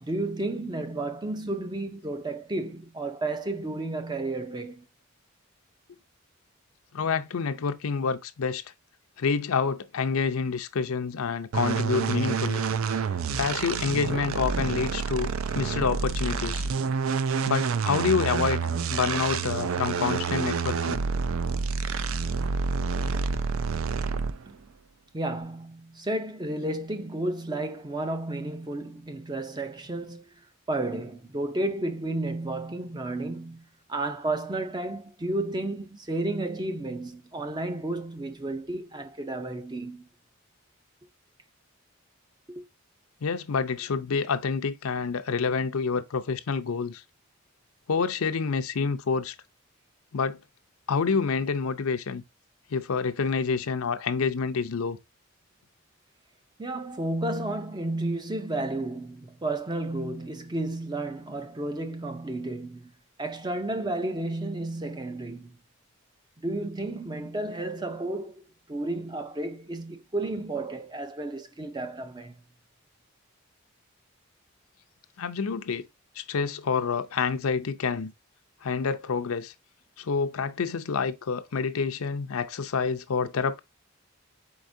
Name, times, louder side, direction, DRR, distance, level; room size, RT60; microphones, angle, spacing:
voice 1, 0.0-4.9 24.5-24.6 25.1-40.1 42.5-42.6 56.6-62.9 63.2-65.6 66.4-72.4, right 2 dB, 20° right, 0.5 m, -32 dB
voice 2, 6.9-8.6 9.2-12.7 13.4-16.7 17.4-18.6 18.9-21.0 43.2-47.0 47.9-49.3 50.1-50.4 50.9-52.2 52.7-55.0 75.2-75.9 76.2-78.1 78.6-79.5 80.0-83.6, left 5 dB, 80° left, 0.5 m, -28 dB
sound 1, 11.5-24.5, right 5 dB, 70° right, 0.4 m, -28 dB
4.7 x 4.1 x 2.6 m
head